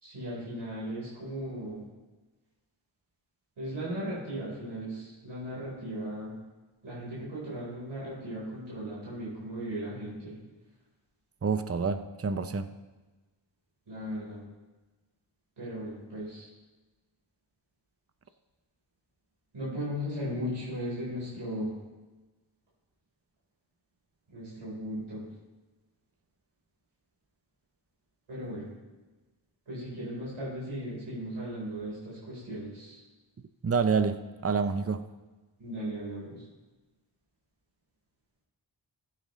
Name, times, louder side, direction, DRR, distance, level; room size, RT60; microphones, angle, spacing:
voice 1, 0.0-1.8 3.6-6.4 6.8-10.4 13.9-14.4 15.6-16.5 19.5-21.8 24.3-25.2 28.3-28.7 29.7-33.0 35.6-36.4, equal, 85° right, -7 dB, 4.3 m, -37 dB
voice 2, 11.4-12.7 33.6-35.0, right 5 dB, 30° right, 10 dB, 0.7 m, -28 dB
15.5 x 9.2 x 3.2 m, 1.2 s
cardioid pair, 45°, 47 cm